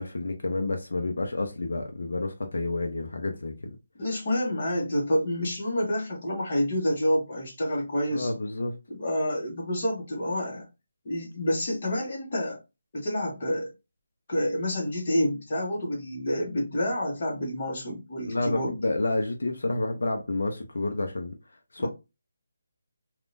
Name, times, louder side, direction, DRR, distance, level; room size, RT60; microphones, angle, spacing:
voice 1, 0.0-3.8 8.1-8.7 18.3-21.3 21.7-21.9, left 2 dB, 65° left, 0.6 m, -29 dB
voice 2, 4.0-8.3 8.9-10.6 11.0-12.6 12.9-13.7 14.3-18.7 21.8-21.9, equal, 30° left, 1.1 m, -28 dB
3.6 x 2.4 x 2.5 m
hypercardioid pair, 180°, 0 cm